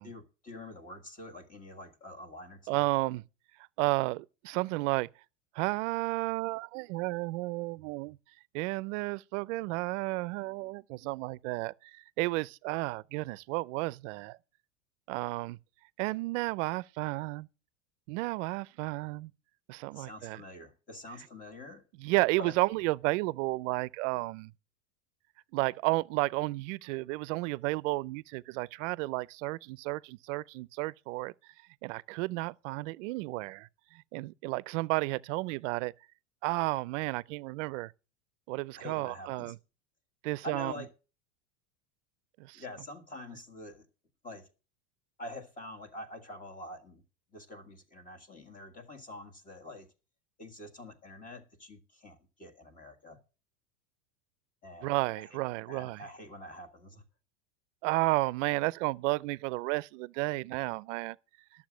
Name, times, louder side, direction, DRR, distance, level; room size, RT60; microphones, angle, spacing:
voice 1, 0.0-2.8 19.9-21.8 22.4-22.5 38.8-39.5 40.4-40.9 42.5-43.8 44.2-44.5 45.2-47.0 47.3-49.9 50.4-53.2 54.6-55.3 55.7-57.0, left 1 dB, 20° left, 1.6 m, -46 dB
voice 2, 2.7-3.2 3.8-5.1 5.5-8.2 8.5-14.4 15.1-15.6 16.0-17.5 18.1-19.3 19.7-20.4 22.0-24.5 25.5-31.3 31.8-33.7 34.1-35.9 36.4-37.9 38.5-39.6 40.2-40.8 42.4-42.6 54.8-56.0 57.8-61.2, right 22 dB, 60° right, 0.6 m, -32 dB
11.5 x 7.3 x 6.1 m
supercardioid pair, 145°, 42 cm